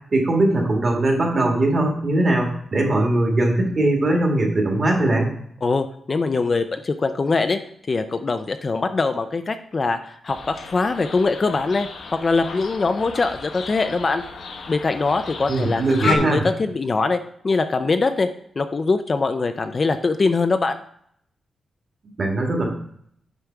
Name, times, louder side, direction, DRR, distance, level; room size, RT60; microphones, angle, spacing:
voice 1, 0.1-5.3 15.5-16.5 22.2-22.7, right 2 dB, 35° right, 1 dB, 1.9 m, -20 dB
voice 2, 5.6-7.6 7.9-14.2 14.7-17.2 17.4-18.3 18.6-20.8, left 3 dB, 30° left, 9 dB, 0.4 m, -22 dB
sound 1, 10.3-16.2, left 4 dB, 65° left, 1.0 m, -34 dB
8.2 x 5.1 x 4.5 m, 0.67 s
wide cardioid pair, 155°, 0 cm